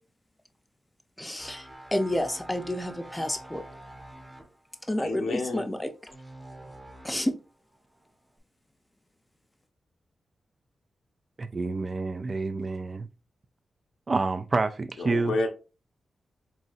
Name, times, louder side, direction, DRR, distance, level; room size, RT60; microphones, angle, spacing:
voice 1, 1.2-3.6 4.9-5.9 7.0-7.3, left 1 dB, 15° left, 0.6 m, -30 dB
sound 1, 1.4-7.4 7.7-8.0, right 1 dB, 15° right, 1.0 m, -47 dB
voice 2, 5.0-5.6 15.0-15.5, left 2 dB, 85° left, 0.7 m, -29 dB
voice 3, 11.4-13.1 14.1-15.4, right 3 dB, 45° right, 0.3 m, -28 dB
4.0 x 2.8 x 2.4 m
cardioid pair, 55°, 0 cm